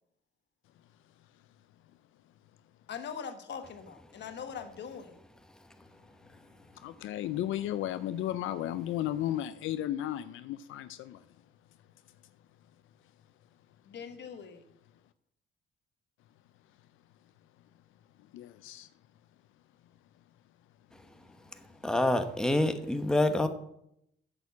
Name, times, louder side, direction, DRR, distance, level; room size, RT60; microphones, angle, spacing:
voice 1, 2.9-5.2 13.8-14.6, left 7 dB, 60° left, 1.3 m, -42 dB
voice 2, 6.8-11.2 18.3-18.9, left 12 dB, 80° left, 0.5 m, -34 dB
voice 3, 21.5-23.5, left 1 dB, 5° left, 1.0 m, -27 dB
8.2 x 7.0 x 7.2 m
cardioid pair, 90°, 20 cm